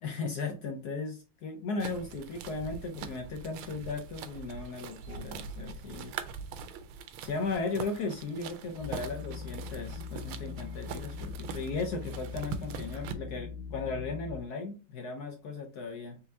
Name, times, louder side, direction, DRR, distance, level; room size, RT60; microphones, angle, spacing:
voice 1, 0.0-6.2 7.2-16.2, left 4 dB, 70° left, 4 dB, 1.0 m, -36 dB
sound 1, 1.8-13.1, right 6 dB, 80° right, 1.4 m, -43 dB
sound 2, 8.8-14.4, left 5 dB, 85° left, 1.5 m, -41 dB
4.3 x 3.9 x 2.7 m, 0.32 s
omnidirectional pair, 2.3 m